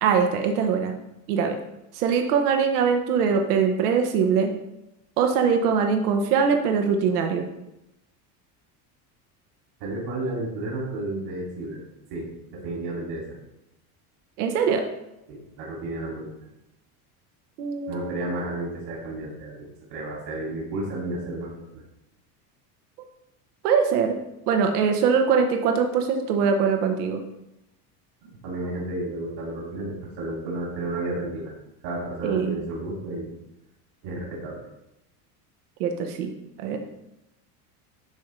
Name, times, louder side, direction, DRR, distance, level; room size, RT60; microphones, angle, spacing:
voice 1, 0.0-0.9 1.3-1.6 1.9-4.5 5.2-7.5 14.4-14.8 17.6-18.3 23.6-24.2 24.5-27.2 32.2-32.5 35.8-36.3 36.6-36.8, right 6 dB, 90° right, 4 dB, 0.9 m, -22 dB
voice 2, 9.8-11.8 12.1-13.4 15.3-16.3 17.9-21.5 28.2-31.5 31.8-33.3 34.0-34.6, right 2 dB, 70° right, -4 dB, 2.5 m, -32 dB
11.0 x 3.7 x 3.1 m, 0.88 s
supercardioid pair, 110°, 45 cm